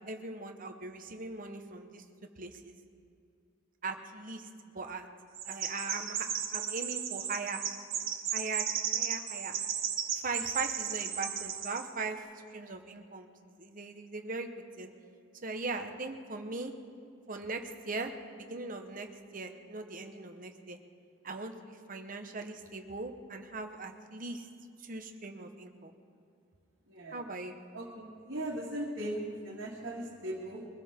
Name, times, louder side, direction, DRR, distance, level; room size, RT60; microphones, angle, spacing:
voice 1, 0.0-2.0 2.4-2.7 3.8-4.5 4.7-5.1 5.4-7.6 8.3-8.7 8.9-9.5 10.1-12.2 12.5-13.3 13.6-14.5 14.8-14.9 15.4-16.7 17.3-19.1 19.3-20.8 21.2-24.5 24.8-25.9 27.1-27.5, right 3 dB, 45° right, 5 dB, 1.1 m, -39 dB
Chirp tweet, 5.3-11.9, right 8 dB, 90° right, 1.5 m, -35 dB
voice 2, 26.9-27.2 27.7-30.7, right 1 dB, 60° right, -6 dB, 2.1 m, -38 dB
22.5 x 15.5 x 3.7 m, 2.4 s
head